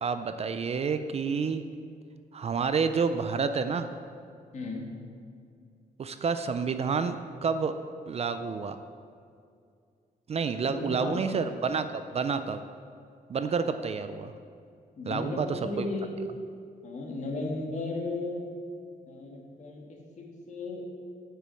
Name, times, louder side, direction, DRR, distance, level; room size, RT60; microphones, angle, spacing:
voice 1, 0.0-1.6 2.3-3.9 6.0-7.8 8.1-8.8 10.3-12.6 13.3-14.3 15.1-15.9, right 5 dB, 40° right, 10 dB, 0.4 m, -29 dB
voice 2, 4.5-4.9 10.6-11.2 15.0-16.2 16.8-18.5 19.1-20.8, left 2 dB, 50° left, 0 dB, 1.7 m, -35 dB
7.5 x 6.8 x 7.6 m, 2.3 s
wide cardioid pair, 145°, 16 cm